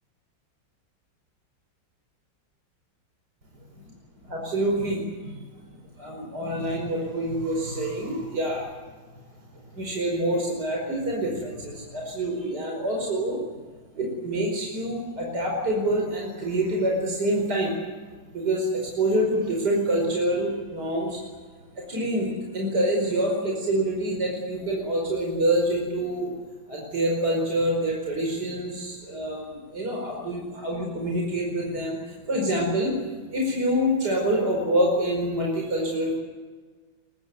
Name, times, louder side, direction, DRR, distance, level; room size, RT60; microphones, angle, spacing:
voice 1, 4.2-5.4 5.7-8.6 9.5-13.4 13.9-17.8 18.3-21.3 21.9-26.3 26.7-33.0 33.3-36.2, right 1 dB, 55° right, -1 dB, 5.6 m, -26 dB
24.0 x 21.5 x 9.5 m, 1.4 s
omnidirectional pair, 2.1 m